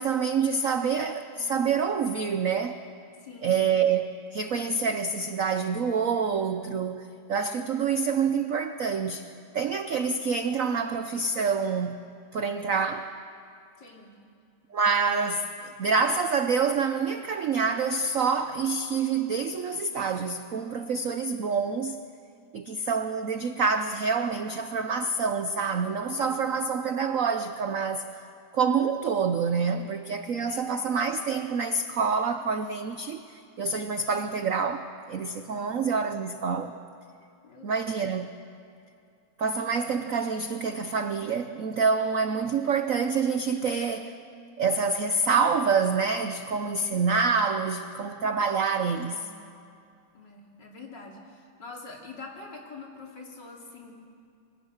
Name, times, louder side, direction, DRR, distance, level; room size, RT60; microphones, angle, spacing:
voice 1, 0.0-2.8 3.4-9.3 9.5-12.0 12.3-13.1 14.7-22.0 22.5-28.2 28.5-36.7 37.6-38.3 39.4-44.1 44.6-49.3, right 5 dB, 65° right, 8 dB, 0.8 m, -27 dB
voice 2, 3.2-3.6 13.8-14.2 26.1-26.4 30.4-30.8 35.6-35.8 37.4-37.9 49.1-49.3 50.1-53.9, left 3 dB, 55° left, 0 dB, 3.5 m, -45 dB
27.5 x 23.5 x 6.5 m, 2.4 s
omnidirectional pair, 2.4 m